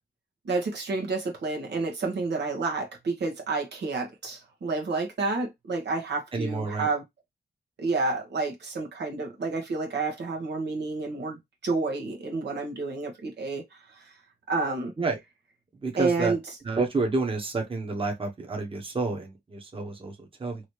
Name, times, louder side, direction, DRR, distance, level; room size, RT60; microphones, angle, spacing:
voice 1, 0.4-7.0 7.8-13.6 13.9-14.1 14.5-14.9 15.9-16.4, right 3 dB, 85° right, 1.2 m, -29 dB
voice 2, 6.3-6.9 15.0-15.2 15.8-16.4 16.6-20.6, right 3 dB, 30° right, 1.0 m, -29 dB
3.1 x 2.8 x 3.1 m
wide cardioid pair, 90°, 17 cm